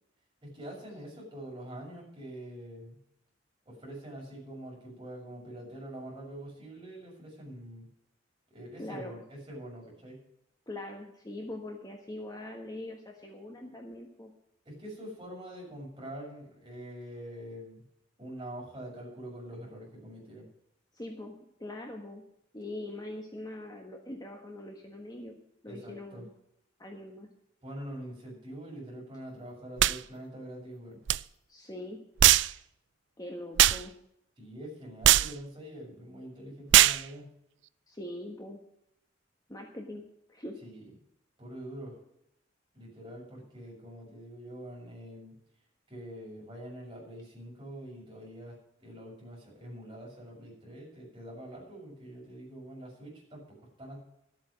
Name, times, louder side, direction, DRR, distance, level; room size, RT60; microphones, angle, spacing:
voice 1, 0.4-3.0 3.6-7.9 8.5-10.2 14.6-17.8 18.2-20.5 25.6-26.2 27.6-31.0 34.4-37.3 40.6-40.9 41.4-41.9 42.7-45.3 45.9-54.0, right 1 dB, 25° right, -3 dB, 6.7 m, -45 dB
voice 2, 8.8-9.1 10.7-14.3 20.9-22.2 22.5-26.3 26.8-27.3 31.5-32.0 33.2-33.9 37.9-38.6 39.5-40.0 40.3-40.6, left 1 dB, 20° left, 2 dB, 1.4 m, -42 dB
sound 1, 29.8-30.0 31.1-31.2 32.2-32.5 33.6-33.8 35.0-35.3 36.7-37.0, right 13 dB, 65° right, 0.4 m, -20 dB
13.5 x 8.6 x 6.4 m, 0.77 s
head